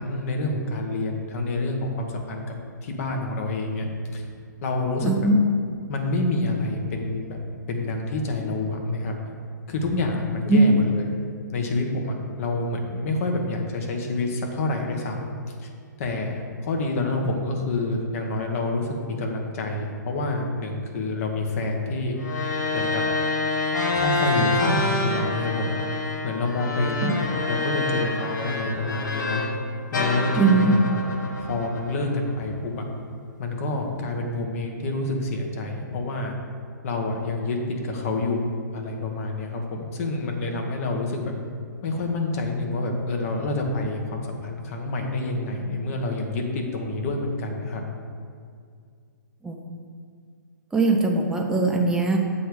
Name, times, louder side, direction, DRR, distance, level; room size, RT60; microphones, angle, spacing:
voice 1, 0.0-2.6 2.8-4.2 4.6-5.3 5.9-7.4 7.7-9.2 9.7-11.1 11.5-15.3 15.6-15.7 16.0-22.2 22.7-23.0 23.9-25.8 26.2-29.4 29.9-31.0 31.4-32.8 33.4-36.4 36.8-38.5 38.7-41.3 41.8-47.8, left 2 dB, 45° left, 2 dB, 1.2 m, -27 dB
voice 2, 5.0-5.4 10.5-10.8 27.0-27.2 30.4-30.8 49.4-49.6 50.7-52.2, right 2 dB, 5° right, 1 dB, 0.7 m, -20 dB
sound 1, 22.2-29.6 29.9-32.3, left 2 dB, 70° left, 1.0 m, -27 dB
7.8 x 3.5 x 6.4 m, 2.2 s
hypercardioid pair, 135°, 10 cm